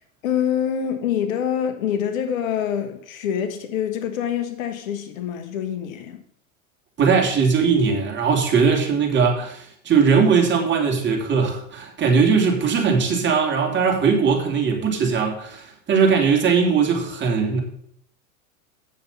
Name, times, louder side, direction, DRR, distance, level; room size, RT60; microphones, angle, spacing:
voice 1, 0.2-6.2, left 9 dB, 70° left, 1.4 m, -25 dB
voice 2, 7.0-17.6, right 5 dB, 25° right, 2.9 m, -19 dB
8.4 x 7.0 x 5.6 m
hypercardioid pair, 100°, 42 cm